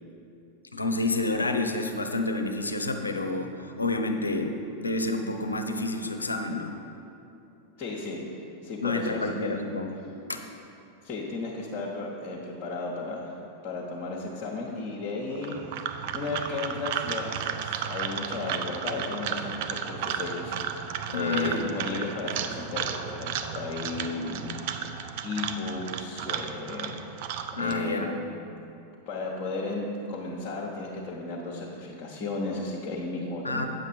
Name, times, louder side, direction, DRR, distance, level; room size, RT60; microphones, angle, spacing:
voice 1, 0.7-6.7 8.8-9.9 10.3-10.5 21.1-21.6 27.5-28.2 33.4-33.7, left 2 dB, 80° left, 5 dB, 0.6 m, -29 dB
voice 2, 7.8-8.2 8.6-9.6 11.0-13.3 13.6-15.8 16.1-20.6 21.1-24.9 25.2-27.2 27.6-28.4 29.1-33.7, left 3 dB, 30° left, -4 dB, 1.1 m, -34 dB
sound 1, 15.3-27.7, right 8 dB, 50° right, 0.5 m, -34 dB
9.0 x 7.2 x 4.3 m, 2.8 s
figure-of-eight pair, 90°, 0 cm